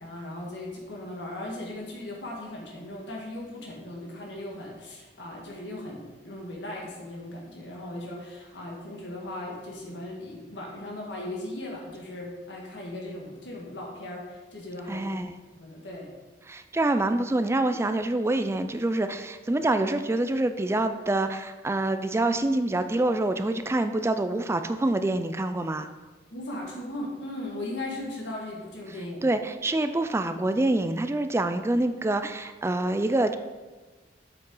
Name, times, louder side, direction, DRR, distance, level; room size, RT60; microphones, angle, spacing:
voice 1, 0.0-15.1 15.6-16.1 26.3-29.2, left 1 dB, 85° left, -2 dB, 1.6 m, -38 dB
voice 2, 14.9-15.3 16.5-25.9 29.2-33.3, right 2 dB, 15° right, 9 dB, 0.4 m, -26 dB
7.7 x 7.1 x 3.8 m, 1.3 s
head